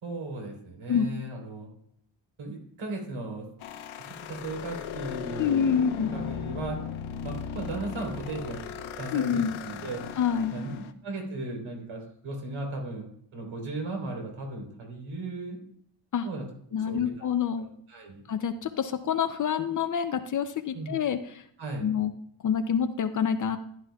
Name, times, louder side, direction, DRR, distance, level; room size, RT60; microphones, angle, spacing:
voice 1, 0.0-1.7 2.4-3.5 4.1-5.6 6.1-6.8 7.2-8.7 9.0-10.0 10.5-15.6 16.2-16.4 16.7-17.3 17.9-18.2 20.7-21.0 21.6-21.9, right 2 dB, 65° right, 2 dB, 3.7 m, -36 dB
sound 1, 3.6-10.9, left 8 dB, 70° left, 0.9 m, -37 dB
voice 2, 5.4-6.1 9.1-9.6 10.2-10.6 16.1-16.3 16.7-17.7 18.3-21.4 21.8-22.1 22.4-23.6, left 7 dB, 40° left, 9 dB, 0.5 m, -27 dB
15.0 x 11.0 x 2.3 m, 0.67 s
cardioid pair, 175°, 50 cm